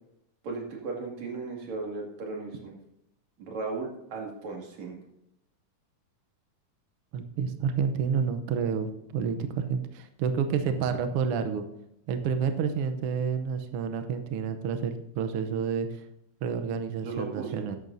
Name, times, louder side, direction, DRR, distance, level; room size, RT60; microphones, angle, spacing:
voice 1, 0.4-2.7 3.4-5.0 17.0-17.7, right 3 dB, 60° right, 0 dB, 3.4 m, -36 dB
voice 2, 7.1-11.7 12.1-16.0 16.4-17.8, right 6 dB, 80° right, 8 dB, 1.3 m, -29 dB
14.0 x 10.5 x 2.7 m, 0.82 s
omnidirectional pair, 3.6 m